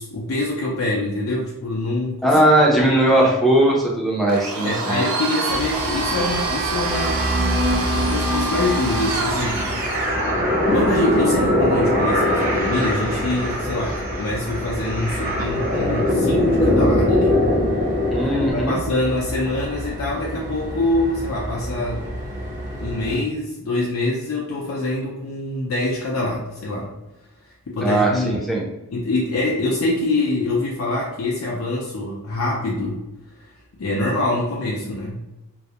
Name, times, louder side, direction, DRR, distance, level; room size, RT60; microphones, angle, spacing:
voice 1, 0.0-3.3 4.6-7.2 7.7-9.9 10.7-17.4 18.2-22.1 22.8-26.9 27.7-28.5 28.9-33.0 33.4-33.5 33.8-35.2, left 2 dB, 80° left, -3 dB, 0.4 m, -25 dB
voice 2, 2.2-5.0 18.1-18.8 27.8-28.6, right 1 dB, ahead, -4 dB, 0.4 m, -18 dB
Domestic sounds home sounds, 4.3-10.2, right 3 dB, 90° right, 0.4 m, -26 dB
sound 1, 5.5-23.2, right 1 dB, 65° right, 0.9 m, -32 dB
sound 2, 6.8-18.5, left 1 dB, 40° right, 0.6 m, -22 dB
2.3 x 2.0 x 2.7 m, 1.0 s
head